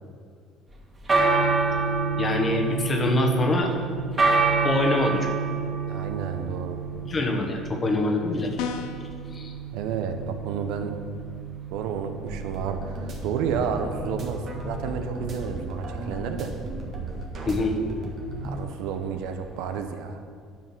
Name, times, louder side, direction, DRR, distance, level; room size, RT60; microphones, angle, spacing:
sound 1, 0.7-19.8, right 4 dB, 30° right, 2.2 m, -29 dB
voice 1, 2.1-3.7 4.6-5.3 7.0-8.6 9.3-9.5 17.4-17.8, left 2 dB, 35° left, 2 dB, 1.3 m, -24 dB
voice 2, 5.9-6.8 9.7-11.0 11.7-16.5 18.4-20.2, right 7 dB, 70° right, 7 dB, 0.8 m, -31 dB
sound 2, 8.6-9.1, left 8 dB, 70° left, 0.6 m, -32 dB
sound 3, 12.3-18.6, right 2 dB, 50° right, 1.7 m, -35 dB
10.5 x 4.9 x 6.0 m, 2.3 s
hypercardioid pair, 65°, 0 cm